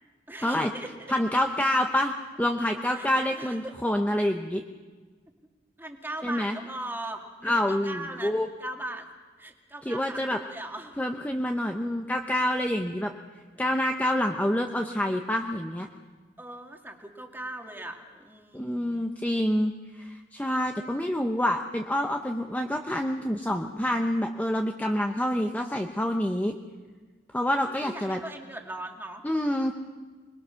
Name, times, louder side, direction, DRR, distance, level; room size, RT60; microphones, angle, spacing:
voice 1, 0.3-1.1 2.9-3.7 5.8-8.3 8.6-9.1 9.4-11.0 13.5-13.6 16.4-19.0 27.6-29.2, right 1 dB, 10° right, 3 dB, 2.1 m, -39 dB
voice 2, 1.1-4.6 6.2-6.6 7.4-8.5 9.9-10.4 11.0-13.1 13.6-15.9 18.5-26.5 27.3-28.2 29.2-29.7, left 1 dB, 10° left, 4 dB, 0.8 m, -27 dB
26.0 x 21.0 x 6.4 m, 1.4 s
head